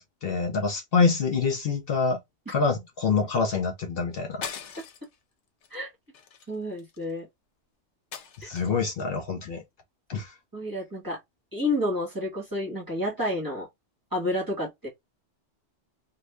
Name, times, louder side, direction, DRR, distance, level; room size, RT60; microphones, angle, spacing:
voice 1, 0.0-2.2 2.5-4.4 8.4-9.6 10.1-10.3, left 5 dB, 60° left, 0.8 m, -26 dB
sound 1, 4.4-5.2 5.6-5.8 6.1-7.1 8.1-8.9, left 7 dB, 85° left, 0.9 m, -40 dB
voice 2, 6.5-7.3 8.4-8.5 10.5-11.2 11.5-13.7 14.1-14.9, left 1 dB, 20° right, 1.2 m, -30 dB
2.6 x 2.4 x 3.1 m
omnidirectional pair, 1.2 m